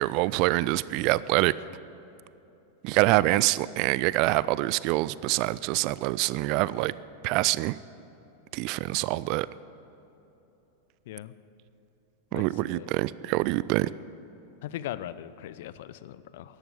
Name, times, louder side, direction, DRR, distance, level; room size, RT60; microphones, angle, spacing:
voice 1, 0.0-1.5 2.8-6.9 7.2-7.8 8.5-9.5 12.3-13.9, right 18 dB, 45° right, 19 dB, 0.3 m, -25 dB
voice 2, 12.3-12.9 14.6-16.6, left 13 dB, 55° left, 15 dB, 0.5 m, -39 dB
14.0 x 11.5 x 8.5 m, 3.0 s
figure-of-eight pair, 90°, 0 cm